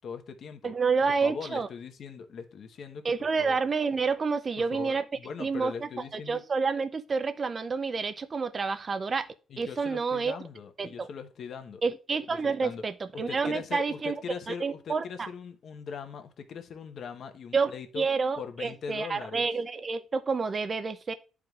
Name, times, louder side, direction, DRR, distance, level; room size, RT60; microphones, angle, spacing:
voice 1, 0.0-0.7 1.0-3.1 3.4-3.6 4.6-6.4 9.5-11.8 12.3-12.8 13.1-18.1 18.4-19.5, left 6 dB, 60° left, 1.0 m, -40 dB
voice 2, 0.6-1.7 3.0-5.0 5.4-5.9 6.3-9.3 9.6-10.4 10.8-11.1 11.8-14.1 14.5-15.3 17.5-21.1, right 4 dB, 35° right, 0.5 m, -29 dB
10.5 x 4.8 x 2.3 m
cardioid pair, 90°, 0 cm